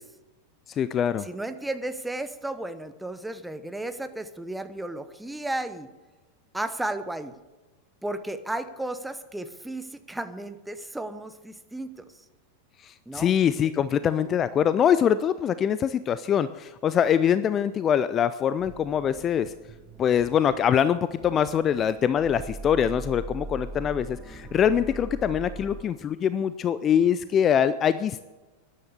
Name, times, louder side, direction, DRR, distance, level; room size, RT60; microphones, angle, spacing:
voice 1, 0.7-1.3 12.8-19.5 20.0-28.3, left 8 dB, 25° left, 14 dB, 0.5 m, -24 dB
voice 2, 1.2-5.9 6.5-7.3 8.0-12.2 13.1-13.3, right 1 dB, 5° right, 10 dB, 1.0 m, -34 dB
sound 1, 18.6-25.8, right 2 dB, 25° right, 1.3 m, -41 dB
13.5 x 10.5 x 6.8 m, 1.2 s
figure-of-eight pair, 90°, 0 cm